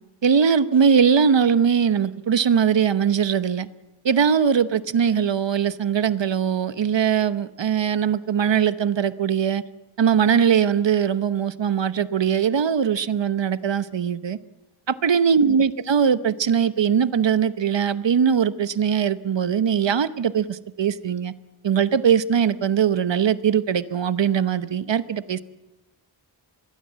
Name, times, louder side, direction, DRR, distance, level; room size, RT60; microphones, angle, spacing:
voice 1, 0.2-3.7 4.0-9.6 10.0-14.4 15.0-21.3 21.6-25.4, right 7 dB, 65° right, 1.0 m, -21 dB
24.5 x 21.0 x 7.4 m
wide cardioid pair, 100°, 47 cm